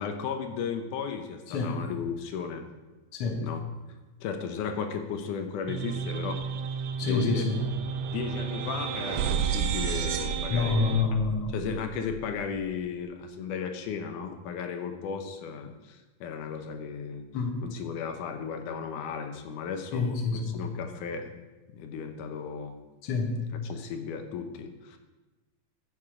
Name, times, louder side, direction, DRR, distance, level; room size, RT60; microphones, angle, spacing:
voice 1, 0.0-2.7 3.4-3.6 4.2-6.4 7.0-7.5 8.1-11.1 11.5-17.2 17.6-21.3 21.7-22.8 23.5-25.0, left 6 dB, 85° left, 6 dB, 2.5 m, -35 dB
sound 1, 5.7-11.1, right 6 dB, 90° right, 1.2 m, -34 dB
sound 2, 6.0-6.2 6.5-12.7, right 8 dB, 70° right, 1.7 m, -34 dB
voice 2, 7.0-7.6 10.5-11.5 17.3-17.6 19.9-20.5 23.0-23.4, left 4 dB, 55° left, 2 dB, 2.0 m, -27 dB
14.0 x 7.3 x 4.9 m, 1.1 s
omnidirectional pair, 3.5 m